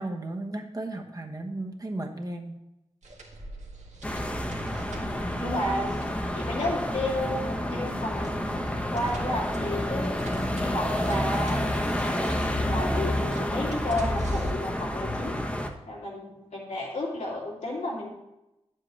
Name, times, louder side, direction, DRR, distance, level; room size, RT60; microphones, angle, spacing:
voice 1, 0.0-2.5, right 2 dB, 30° right, 3 dB, 1.1 m, -34 dB
sound 1, 3.0-14.5, right 1 dB, 80° right, 1.5 m, -41 dB
sound 2, 4.0-15.7, left 1 dB, 10° left, 0.9 m, -29 dB
voice 2, 4.9-10.2 10.5-12.0 12.6-15.3 15.9-18.1, left 1 dB, 85° left, -4 dB, 2.5 m, -32 dB
9.7 x 7.5 x 3.2 m, 0.92 s
wide cardioid pair, 75°, 12 cm